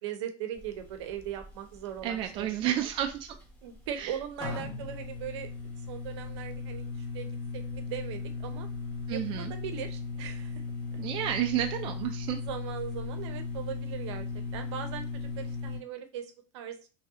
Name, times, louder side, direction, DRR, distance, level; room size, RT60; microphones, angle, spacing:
voice 1, 0.0-2.9 3.6-5.5 5.9-8.7 9.1-10.6 12.4-14.3 14.5-16.9, right 9 dB, 70° right, 7 dB, 0.8 m, -39 dB
sound 1, 0.6-15.8, left 4 dB, 10° left, 1.3 m, -38 dB
voice 2, 2.0-3.4 4.0-4.1 9.1-9.5 11.0-12.4, right 11 dB, 35° right, 4 dB, 0.4 m, -31 dB
3.2 x 2.7 x 3.7 m, 0.33 s
supercardioid pair, 125°, 15 cm